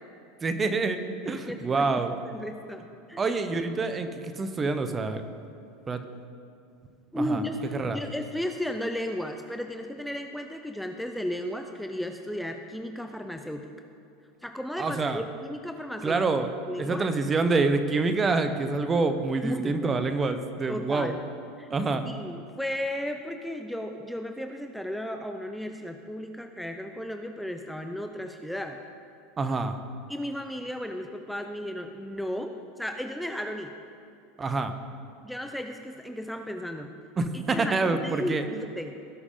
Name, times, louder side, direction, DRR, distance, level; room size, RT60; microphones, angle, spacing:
voice 1, 0.4-1.0 1.2-2.1 3.2-5.2 5.9-6.0 7.1-7.4 7.7-8.0 14.8-15.2 16.0-16.5 16.8-21.1 21.7-22.0 29.4-29.7 34.4-34.7 37.2-38.6, right 3 dB, 25° right, 8 dB, 0.9 m, -26 dB
voice 2, 1.4-3.2 7.1-13.7 14.4-16.2 16.7-17.1 19.4-19.9 20.7-21.2 21.6-21.7 22.0-28.8 30.1-33.7 35.2-36.9 37.3-37.7 38.0-39.0, left 1 dB, ahead, 5 dB, 0.6 m, -34 dB
17.5 x 6.1 x 3.8 m, 2.6 s
hypercardioid pair, 85°, 0 cm